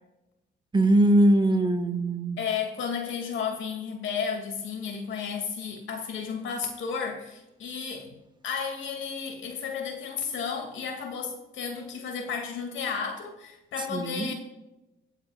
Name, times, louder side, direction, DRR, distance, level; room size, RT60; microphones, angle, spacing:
voice 1, 0.7-2.4 13.9-14.3, right 1 dB, 25° right, 1.6 m, -21 dB
voice 2, 2.4-14.3, left 6 dB, 75° left, 2.6 m, -33 dB
25.0 x 8.3 x 2.5 m
cardioid pair, 90°, 20 cm